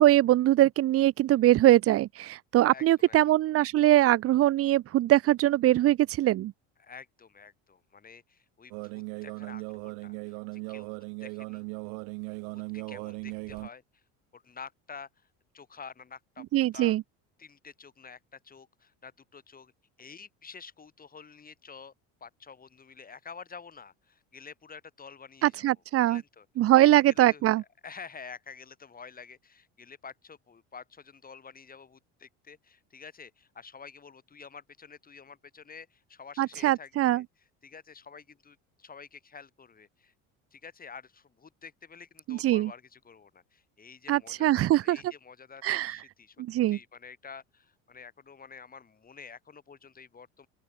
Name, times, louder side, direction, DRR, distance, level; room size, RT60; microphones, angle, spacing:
voice 1, 0.0-6.5 16.5-17.0 25.4-26.2 26.6-27.6 36.4-37.2 42.3-42.7 44.1-45.0 45.6-46.0 46.4-46.8, right 14 dB, 45° right, 0.7 m, -22 dB
voice 2, 2.7-3.4 6.8-10.9 11.2-11.6 12.5-14.0 14.3-15.3 15.5-16.4 16.7-17.0 17.4-19.7 20.0-21.9 22.2-26.5 26.8-37.2 37.6-40.1 40.5-46.4 46.7-50.5, left 5 dB, 25° left, 5.7 m, -49 dB
sound 1, 8.7-13.7, right 40 dB or more, 80° right, 1.3 m, -38 dB
open air
supercardioid pair, 110°, 34 cm